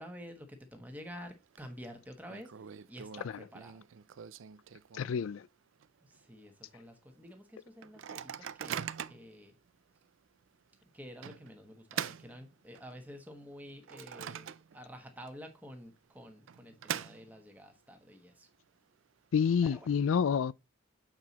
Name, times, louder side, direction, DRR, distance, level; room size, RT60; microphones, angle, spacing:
voice 1, 0.0-2.5 2.9-3.8 6.0-8.8 9.1-9.5 10.9-18.5 19.6-19.9, equal, 10° right, 1.3 m, -49 dB
Microwave oven, 1.0-1.6 1.9-2.0 2.3-5.4 5.8-5.9 6.1-6.5 7.0-7.1 7.8-9.3 10.0-10.1 11.2-13.0 13.5-15.0 15.3-15.4 16.2-17.6, right 9 dB, 70° right, 0.4 m, -42 dB
voice 2, 4.9-5.4 19.3-20.5, left 7 dB, 80° left, 0.4 m, -28 dB
7.7 x 4.5 x 4.1 m
head